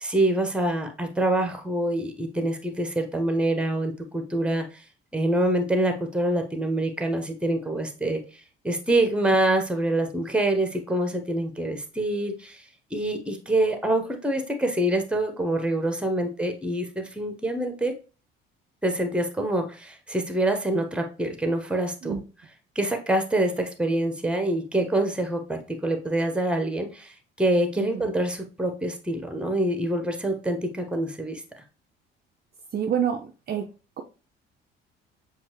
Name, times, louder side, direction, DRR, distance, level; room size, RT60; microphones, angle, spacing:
voice 1, 0.0-4.8 5.1-12.6 12.9-17.9 18.8-22.2 22.7-31.4, right 1 dB, 5° right, 6 dB, 1.0 m, -26 dB
voice 2, 27.8-28.1 32.7-33.7, right 8 dB, 35° right, 3 dB, 0.5 m, -28 dB
7.1 x 2.5 x 2.9 m, 0.34 s
figure-of-eight pair, 50°, 30 cm